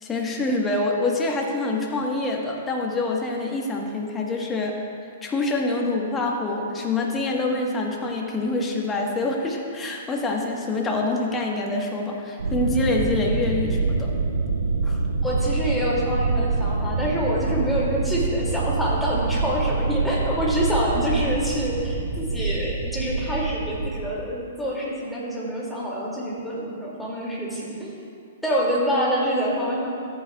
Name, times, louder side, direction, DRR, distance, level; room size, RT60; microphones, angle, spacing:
voice 1, 0.0-4.8 5.2-14.1 14.8-15.0, left 2 dB, 15° left, 0 dB, 1.3 m, -26 dB
sound 1, 12.4-24.1, right 3 dB, 90° right, 1.4 m, -26 dB
voice 2, 15.2-27.9 28.4-29.9, equal, ahead, -6 dB, 2.4 m, -26 dB
14.0 x 8.7 x 2.3 m, 2.3 s
hypercardioid pair, 120°, 0 cm